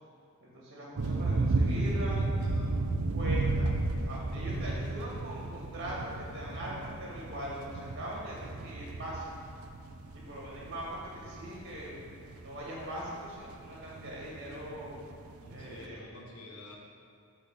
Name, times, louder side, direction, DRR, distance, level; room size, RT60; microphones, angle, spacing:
voice 1, 0.4-2.2 3.1-9.3 10.1-12.0 12.4-15.0 15.5-16.0, equal, 50° right, -5 dB, 1.9 m, -41 dB
voice 2, 1.0-2.8 15.4-16.8, left 1 dB, 70° left, -1 dB, 1.2 m, -49 dB
sound 1, 1.0-15.8, right 2 dB, 70° right, 0.5 m, -33 dB
7.9 x 4.3 x 6.4 m, 2.4 s
head